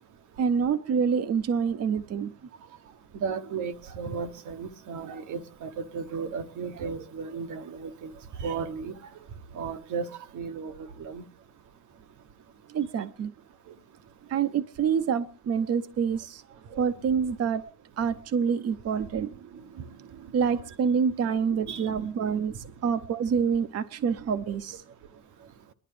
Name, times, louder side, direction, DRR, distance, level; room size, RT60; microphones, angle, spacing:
voice 1, 0.4-2.3 12.7-13.3 14.3-16.4 16.8-17.6 18.0-19.3 20.3-24.8, right 6 dB, 55° right, 0.8 m, -27 dB
voice 2, 3.1-8.1 8.4-8.9 9.5-11.2 16.7-16.8 21.5-22.1, right 5 dB, 80° right, 1.2 m, -35 dB
29.5 x 11.5 x 3.3 m
cardioid pair, 90°, 30 cm